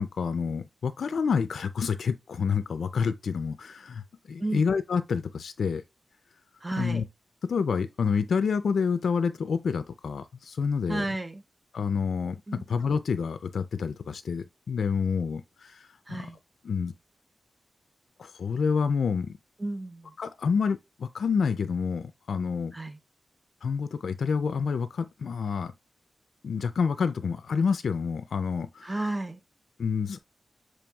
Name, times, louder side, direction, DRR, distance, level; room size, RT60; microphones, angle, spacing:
voice 1, 0.0-4.0 4.3-5.8 6.8-7.0 7.4-11.0 11.7-16.3 16.6-16.9 18.2-19.4 20.2-22.7 23.6-25.7 26.4-28.9 29.8-30.2, left 5 dB, 80° left, 0.4 m, -28 dB
voice 2, 6.6-7.0 10.9-11.4 12.5-12.7 16.1-16.4 19.6-20.1 22.7-23.0 28.8-29.4, right 2 dB, 20° right, 0.5 m, -32 dB
6.9 x 3.1 x 2.3 m
wide cardioid pair, 145°, 0 cm